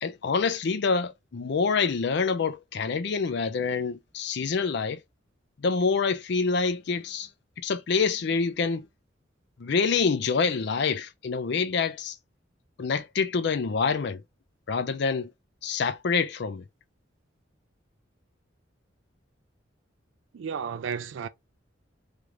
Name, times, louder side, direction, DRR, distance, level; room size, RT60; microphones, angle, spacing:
voice 1, 0.0-5.0 5.6-7.3 7.6-8.9 9.6-12.2 12.8-14.2 14.7-15.3 15.6-16.6, left 5 dB, 60° left, 0.5 m, -26 dB
voice 2, 20.3-21.3, right 6 dB, 85° right, 0.4 m, -33 dB
3.3 x 2.4 x 2.9 m
head